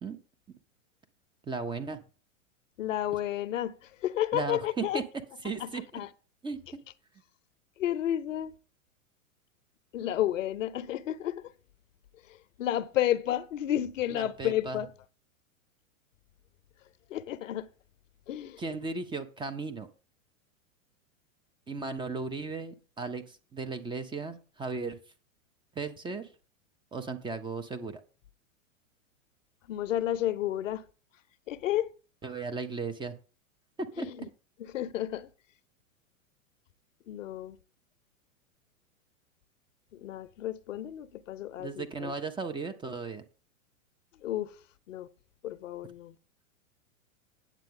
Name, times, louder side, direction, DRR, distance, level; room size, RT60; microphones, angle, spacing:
voice 1, 1.4-2.0 4.3-5.0 5.4-6.0 6.4-6.8 14.1-14.8 18.6-19.9 21.7-25.0 25.8-26.3 26.9-28.0 32.2-33.1 33.8-34.3 41.6-43.2, right 4 dB, 10° right, 0.7 m, -36 dB
voice 2, 2.8-5.0 5.6-6.1 7.8-8.5 9.9-11.5 12.3-14.9 17.1-17.7 18.3-18.6 29.7-30.8 31.5-31.9 34.0-34.3 34.6-35.3 37.1-37.6 39.9-42.1 44.2-44.5 44.9-45.1 45.4-46.2, left 12 dB, 65° left, 0.7 m, -31 dB
9.0 x 7.3 x 3.7 m
hypercardioid pair, 105°, 41 cm